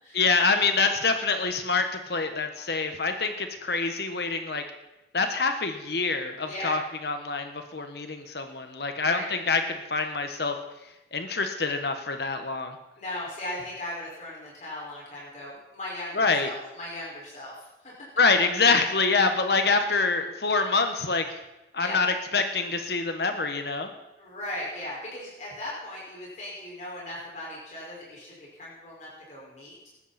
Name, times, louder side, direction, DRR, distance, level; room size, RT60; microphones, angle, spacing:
voice 1, 0.1-4.6 5.1-10.6 11.1-12.8 16.1-16.5 18.2-21.4 21.7-22.1 22.3-23.9, left 4 dB, 70° left, 6 dB, 1.4 m, -26 dB
voice 2, 13.0-17.9 21.8-22.0 24.2-29.9, left 1 dB, 40° left, -5 dB, 5.5 m, -38 dB
20.0 x 14.0 x 4.4 m, 0.98 s
head